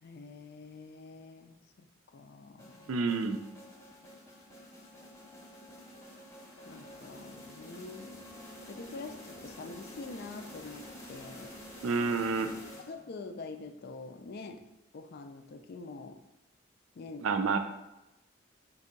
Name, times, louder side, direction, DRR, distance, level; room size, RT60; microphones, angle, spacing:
voice 1, 0.0-2.9 6.6-8.2 8.7-11.5 12.9-14.6 14.9-16.2 16.9-17.3, left 3 dB, 50° left, 7 dB, 0.4 m, -45 dB
sound 1, 2.6-13.3, left 1 dB, 15° left, 0.7 m, -49 dB
voice 2, 2.9-3.4 11.8-12.5 17.2-17.6, right 4 dB, 80° right, 8 dB, 0.4 m, -28 dB
4.3 x 2.7 x 3.8 m, 0.93 s
head